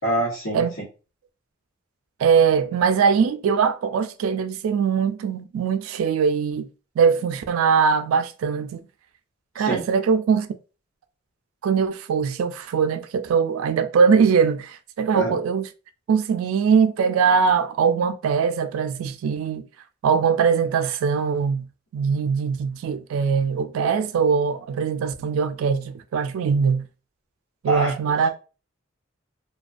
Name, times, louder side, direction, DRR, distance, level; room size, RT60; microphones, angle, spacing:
voice 1, 0.0-0.6 9.5-9.8 15.1-15.4 27.7-27.9, right 2 dB, 70° left, 1.0 m, -24 dB
voice 2, 2.2-6.7 7.0-8.8 9.6-10.5 11.6-15.7 16.1-19.6 20.0-21.7 21.9-26.9 27.6-28.3, right 6 dB, 85° right, 0.3 m, -21 dB
2.4 x 2.2 x 2.3 m
head